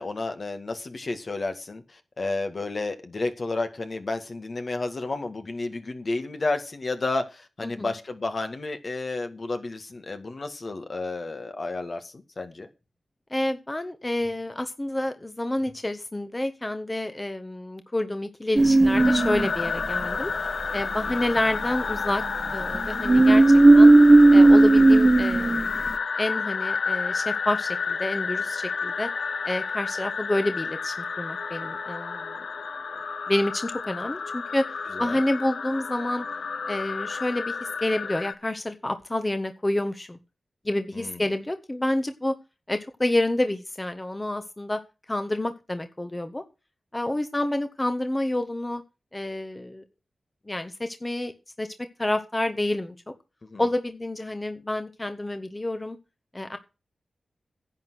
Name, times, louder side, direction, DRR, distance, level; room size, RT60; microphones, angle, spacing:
voice 1, 0.0-12.7 21.1-21.2 34.9-35.2 40.9-41.2 53.4-53.6, left 3 dB, 55° left, 1.9 m, -31 dB
voice 2, 7.6-7.9 13.3-20.3 20.7-22.2 22.5-23.4 23.8-23.9 24.3-25.8 26.2-29.1 29.4-32.4 33.3-34.6 35.0-36.3 36.7-40.2 40.6-42.3 42.7-44.8 45.1-46.4 46.9-48.8 49.1-49.8 50.5-51.3 51.6-51.7 52.0-52.9 53.6-56.0 56.3-56.6, left 1 dB, 25° left, 1.3 m, -28 dB
sound 1, 18.6-19.7 22.7-25.9, right 2 dB, 35° right, 1.1 m, -15 dB
sound 2, 19.0-38.3, left 5 dB, 80° left, 1.0 m, -31 dB
10.5 x 8.1 x 6.3 m
cardioid pair, 60°, 0 cm